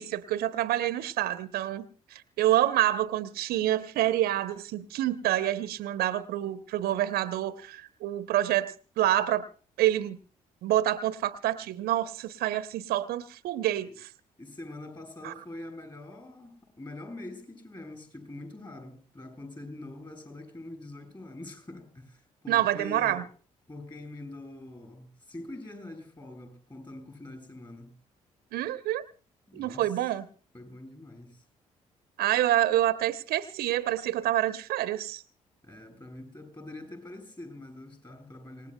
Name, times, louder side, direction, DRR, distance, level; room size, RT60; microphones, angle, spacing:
voice 1, 0.0-9.4 9.8-10.2 10.6-14.1 15.2-15.3 22.5-23.2 28.5-29.0 29.5-30.3 32.2-35.2, right 13 dB, 65° right, 12 dB, 0.8 m, -27 dB
voice 2, 14.4-23.3 23.7-27.9 29.5-30.0 30.5-31.4 35.6-38.7, left 2 dB, 25° left, 6 dB, 7.6 m, -44 dB
27.0 x 18.5 x 2.2 m, 0.38 s
figure-of-eight pair, 45°, 17 cm